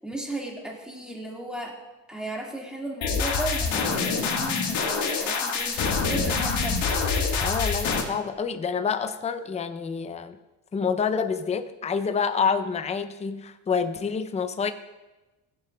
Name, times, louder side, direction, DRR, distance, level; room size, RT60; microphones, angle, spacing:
voice 1, 0.0-1.8 2.1-7.0, right 2 dB, ahead, -1 dB, 1.8 m, -35 dB
sound 1, 3.0-8.0, left 5 dB, 80° left, 1.6 m, -26 dB
voice 2, 7.4-10.4 10.7-14.7, left 6 dB, 15° left, 9 dB, 0.4 m, -27 dB
15.5 x 7.3 x 2.2 m, 1.1 s
cardioid pair, 110°, 46 cm